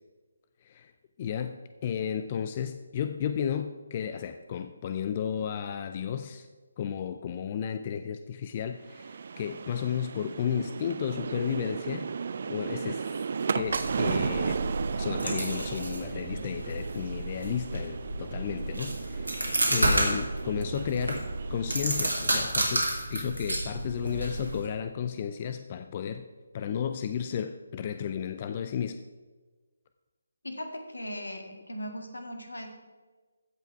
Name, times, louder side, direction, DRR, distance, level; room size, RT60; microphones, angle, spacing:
voice 1, 0.6-0.9 1.2-6.5 6.8-12.1 12.5-13.1 13.4-19.4 19.7-26.3 26.5-29.0, left 8 dB, 30° left, 9 dB, 0.4 m, -33 dB
sound 1, 8.8-22.3, right 5 dB, 45° right, 0.4 m, -35 dB
sound 2, 13.6-24.7, right 1 dB, 80° right, 2.8 m, -31 dB
voice 2, 30.4-32.7, equal, 75° left, 4 dB, 1.9 m, -38 dB
15.5 x 5.7 x 4.6 m, 1.3 s
figure-of-eight pair, 150°, 0 cm